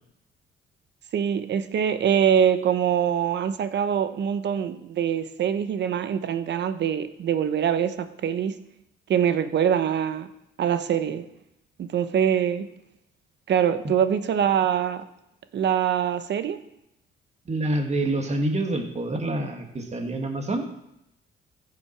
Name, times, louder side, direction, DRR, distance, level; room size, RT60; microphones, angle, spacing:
voice 1, 1.1-8.6 9.1-10.3 10.6-11.3 11.8-12.7 13.5-15.0 15.5-16.6, right 8 dB, 60° right, 11 dB, 0.9 m, -24 dB
voice 2, 17.5-20.7, right 1 dB, 35° right, 4 dB, 2.0 m, -27 dB
15.0 x 7.3 x 4.6 m, 0.83 s
cardioid pair, 90°, 20 cm